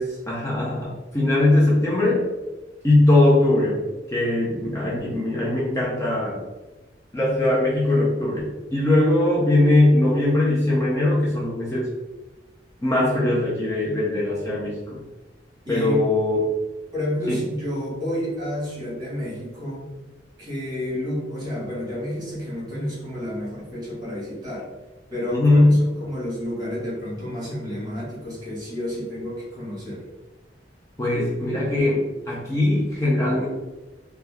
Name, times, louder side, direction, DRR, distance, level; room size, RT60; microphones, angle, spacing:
voice 1, 0.0-2.3 2.8-3.8 4.1-6.4 7.1-11.9 12.8-15.0 15.7-16.5 17.3-17.4 25.3-25.9 27.2-27.3 31.0-33.5, left 1 dB, 15° left, -7 dB, 0.5 m, -20 dB
voice 2, 15.6-16.0 16.9-19.9 20.4-24.7 25.1-30.0, equal, 25° right, -7 dB, 1.4 m, -30 dB
2.7 x 2.2 x 3.4 m, 1.1 s
head